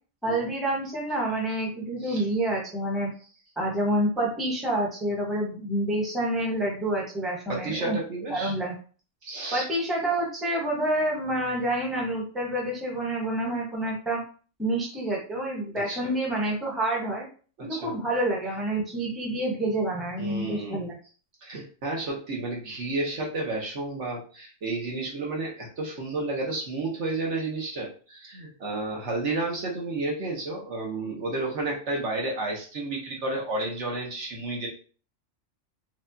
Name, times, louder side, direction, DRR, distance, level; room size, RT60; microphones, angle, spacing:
voice 1, 0.2-3.1 3.6-8.0 8.3-8.7 9.5-14.2 14.6-17.3 17.6-21.0, right 1 dB, ahead, -2 dB, 0.8 m, -28 dB
voice 2, 7.5-8.5 9.2-9.7 15.7-16.1 17.6-18.0 20.2-20.9 21.4-34.7, right 2 dB, 60° right, -1 dB, 1.2 m, -31 dB
4.6 x 2.3 x 2.6 m, 0.39 s
omnidirectional pair, 1.4 m